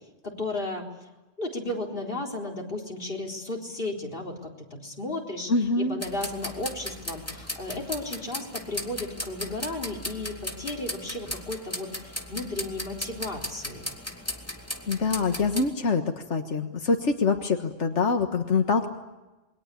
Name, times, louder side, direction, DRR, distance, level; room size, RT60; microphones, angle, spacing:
voice 1, 0.2-0.9 1.4-13.9, left 2 dB, 50° left, 0 dB, 4.4 m, -34 dB
voice 2, 5.5-6.0 14.9-16.0 16.3-18.9, left 4 dB, 85° left, 5 dB, 1.8 m, -25 dB
sound 1, 6.0-15.7, left 1 dB, 15° left, 2.7 m, -37 dB
28.5 x 22.5 x 8.5 m, 1.1 s
omnidirectional pair, 1.2 m